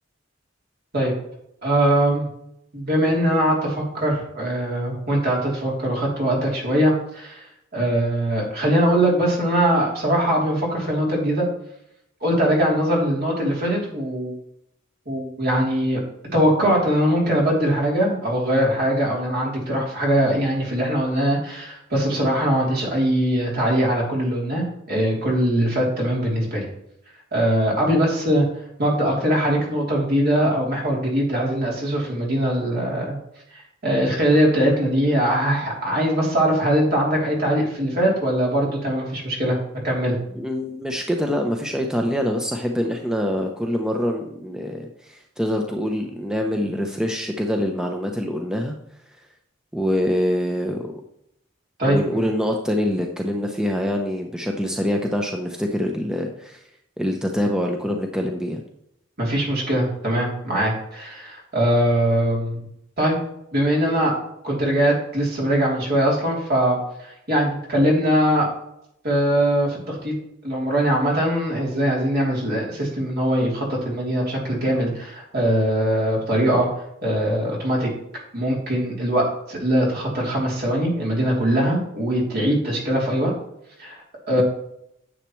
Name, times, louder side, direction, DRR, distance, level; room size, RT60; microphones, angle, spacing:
voice 1, 1.6-2.3 2.7-7.4 7.7-11.4 12.2-14.3 15.1-16.0 16.3-26.7 27.3-28.4 28.8-33.2 33.8-39.6 39.8-40.2 51.8-52.2 59.2-62.6 63.0-63.2 63.5-64.1 64.4-66.8 67.0-68.5 69.0-70.1 70.4-76.7 77.0-77.9 78.3-83.3 83.8-84.0 84.3-84.4, right 1 dB, 55° right, -3 dB, 3.2 m, -21 dB
voice 2, 40.3-48.7 49.7-50.9 51.8-56.6 57.0-58.6, equal, 5° right, 2 dB, 0.7 m, -25 dB
10.0 x 7.3 x 3.1 m, 0.78 s
head